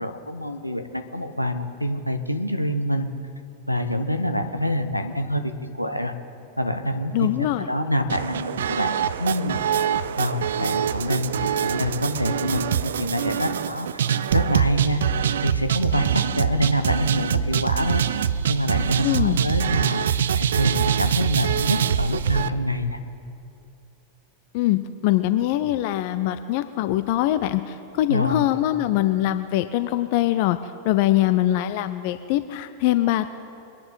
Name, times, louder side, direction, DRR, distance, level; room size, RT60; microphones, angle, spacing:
voice 1, 0.0-3.1 3.7-5.5 5.8-6.1 6.6-8.9 9.2-9.6 10.2-14.0 14.3-15.0 15.4-18.0 18.5-20.0 20.3-23.0 28.1-28.5, equal, 90° left, 7 dB, 0.9 m, -26 dB
voice 2, 7.1-7.7 19.0-19.4 24.5-30.6 30.8-33.3, left 14 dB, 50° left, 12 dB, 0.5 m, -22 dB
sound 1, 8.1-22.5, right 8 dB, 65° right, 0.4 m, -24 dB
24.0 x 10.5 x 4.0 m, 2.6 s
figure-of-eight pair, 90°, 0 cm